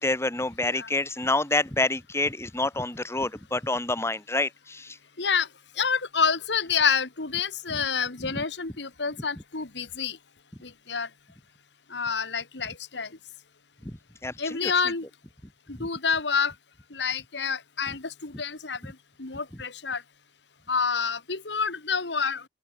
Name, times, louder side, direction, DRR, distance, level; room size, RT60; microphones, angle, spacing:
voice 1, 0.0-5.0 7.7-7.8 8.2-8.4 13.8-13.9 14.2-14.7 15.8-15.9, left 2 dB, 15° left, 1.7 m, -28 dB
voice 2, 5.2-5.5 5.8-10.2 10.6-11.1 11.9-13.1 14.4-15.1 15.7-16.5 16.9-20.0 20.7-22.4, left 6 dB, 75° left, 1.9 m, -28 dB
open air
head